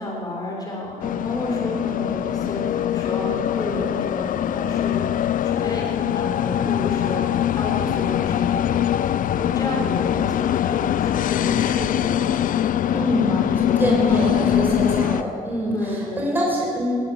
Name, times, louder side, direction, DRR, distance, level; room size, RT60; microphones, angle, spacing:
voice 1, 0.0-7.2 7.5-8.9 9.3-12.3 12.8-14.9 15.7-16.3, left 2 dB, 25° left, -2 dB, 6.3 m, -31 dB
sound 1, 1.0-15.2, left 10 dB, 60° left, 0.6 m, -22 dB
voice 2, 12.9-13.4 13.8-17.0, equal, 10° right, -3 dB, 6.2 m, -24 dB
19.5 x 19.5 x 7.1 m, 2.2 s
cardioid pair, 90°, 16 cm